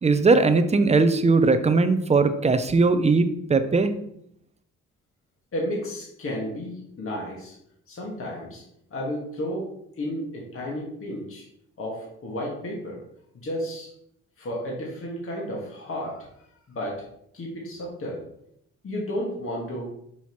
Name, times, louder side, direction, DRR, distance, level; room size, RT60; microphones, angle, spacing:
voice 1, 0.0-3.9, right 3 dB, 20° right, 10 dB, 0.6 m, -19 dB
voice 2, 5.5-7.6 7.9-8.6 8.9-9.7 10.0-11.4 11.8-13.0 13.3-13.9 14.4-16.3 16.7-17.0 17.3-18.2 18.8-19.9, equal, 45° left, -3 dB, 2.0 m, -32 dB
6.0 x 5.5 x 3.1 m, 0.73 s
cardioid pair, 90°, 30 cm